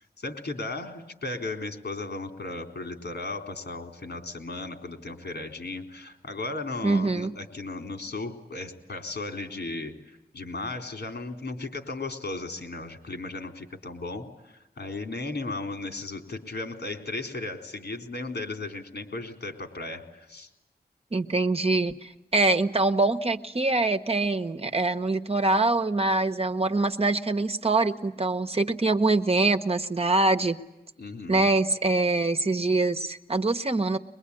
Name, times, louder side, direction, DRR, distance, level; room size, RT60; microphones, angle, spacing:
voice 1, 0.0-20.5 31.0-31.5, left 2 dB, 85° left, 5 dB, 3.8 m, -36 dB
voice 2, 6.8-7.3 21.1-30.6 31.3-34.0, right 3 dB, 35° right, 7 dB, 1.1 m, -24 dB
23.0 x 22.5 x 9.8 m, 0.95 s
wide cardioid pair, 95°, 17 cm